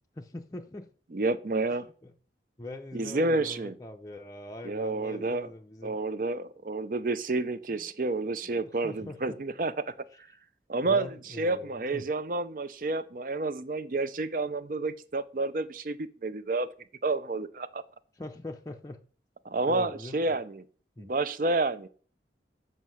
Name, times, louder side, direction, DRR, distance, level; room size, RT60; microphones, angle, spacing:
voice 1, 0.2-0.9 1.8-2.1 2.6-6.0 7.8-7.9 8.4-9.4 10.8-12.0 18.2-19.0 19.7-20.4 21.0-21.1, left 2 dB, 20° left, 0.5 m, -42 dB
voice 2, 1.1-1.9 2.9-3.7 4.6-5.5 5.8-9.9 10.7-16.7 17.0-17.8 19.4-20.6 21.0-21.9, right 3 dB, 50° right, 0.5 m, -30 dB
7.4 x 5.5 x 6.2 m
head